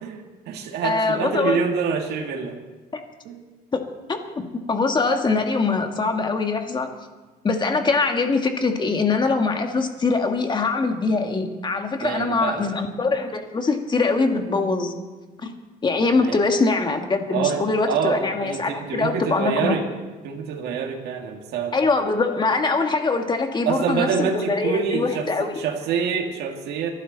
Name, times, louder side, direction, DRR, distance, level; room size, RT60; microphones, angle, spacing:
voice 1, 0.0-2.6 3.3-3.4 12.0-12.7 16.1-16.4 17.3-19.9 20.2-21.8 23.7-26.9, right 6 dB, 75° right, 2 dB, 2.1 m, -26 dB
voice 2, 0.8-1.6 2.9-3.0 3.7-3.8 4.1-6.9 7.4-15.0 15.4-15.5 15.8-19.8 21.7-25.6, left 3 dB, 25° left, 5 dB, 1.8 m, -23 dB
24.5 x 12.0 x 4.0 m, 1.2 s
cardioid pair, 110°, 17 cm